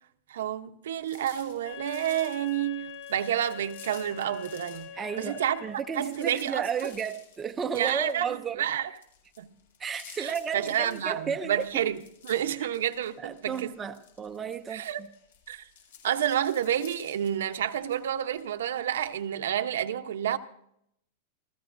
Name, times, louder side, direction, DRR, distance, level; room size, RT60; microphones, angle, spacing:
voice 1, 0.3-4.9 5.2-5.6 6.0-6.9 7.7-8.9 9.4-9.5 10.2-12.0 12.2-13.7 14.7-15.0 15.5-15.7 16.0-20.4, right 10 dB, 85° right, 0.9 m, -29 dB
sound 1, 1.0-4.9 5.2-19.2, left 8 dB, 80° left, 6.0 m, -53 dB
Wind instrument woodwind instrument, 1.6-6.1, left 9 dB, 55° left, 4.8 m, -44 dB
voice 2, 5.0-8.6 9.8-11.8 13.2-15.1, right 6 dB, 10° right, 0.5 m, -33 dB
28.5 x 14.5 x 2.6 m
supercardioid pair, 180°, 0 cm